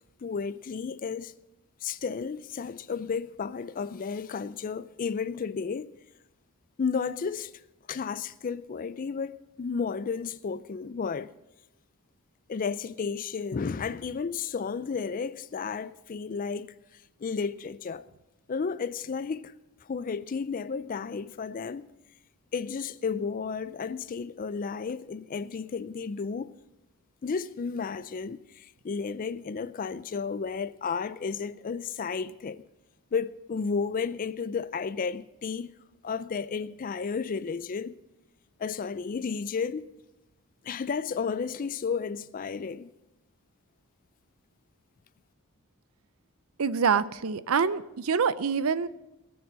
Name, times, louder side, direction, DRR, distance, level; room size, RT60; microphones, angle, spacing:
voice 1, 0.2-1.3 1.8-5.9 6.8-7.5 7.9-11.3 12.5-18.1 18.5-19.5 19.8-21.9 22.5-26.6 27.2-32.6 33.1-35.7 36.0-38.0 38.6-39.9 40.6-42.9, left 5 dB, 40° left, 0.4 m, -33 dB
voice 2, 46.6-48.9, right 6 dB, 70° right, 0.6 m, -26 dB
19.0 x 7.1 x 6.2 m
head